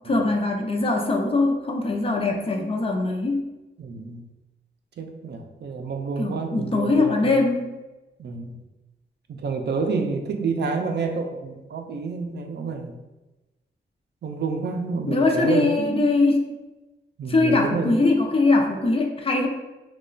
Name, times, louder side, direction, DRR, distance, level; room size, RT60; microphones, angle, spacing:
voice 1, 0.0-3.5 6.2-7.7 15.1-16.4 17.3-19.5, left 3 dB, 30° left, 1 dB, 0.5 m, -22 dB
voice 2, 3.8-4.2 5.0-7.5 8.2-8.6 9.3-13.0 14.2-16.1 17.2-18.0, right 4 dB, 65° right, 4 dB, 0.4 m, -29 dB
3.0 x 2.2 x 3.8 m, 1.0 s
wide cardioid pair, 105°, 19 cm